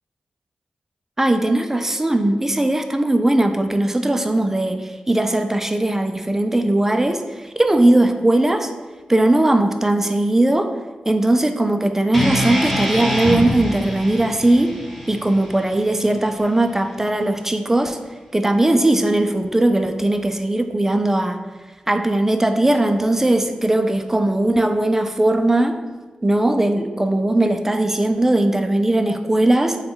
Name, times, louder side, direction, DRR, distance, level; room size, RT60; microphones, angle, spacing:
voice 1, 1.2-8.7 9.1-10.7 11.1-14.7 15.1-18.0 18.3-21.4 21.9-25.8 26.2-29.8, right 1 dB, 15° right, 7 dB, 0.3 m, -19 dB
sound 1, 12.1-16.3, equal, ahead, 0.7 m, -25 dB
3.9 x 2.2 x 3.8 m, 1.4 s
cardioid pair, 75°, 3 cm